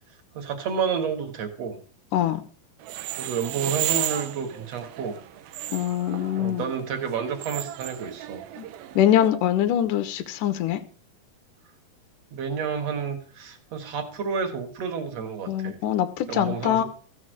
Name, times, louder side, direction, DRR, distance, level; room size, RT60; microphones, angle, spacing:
voice 1, 0.3-1.8 3.2-5.1 6.4-8.4 12.3-15.8 16.3-16.8, right 6 dB, 50° right, 6 dB, 2.5 m, -30 dB
sound 1, 2.8-9.3, right 13 dB, 80° right, 2.5 m, -34 dB
voice 2, 5.7-6.7 8.6-8.7 9.0-10.8 15.5-16.8, left 11 dB, 70° left, 10 dB, 2.4 m, -23 dB
15.0 x 6.4 x 6.5 m, 0.43 s
omnidirectional pair, 4.2 m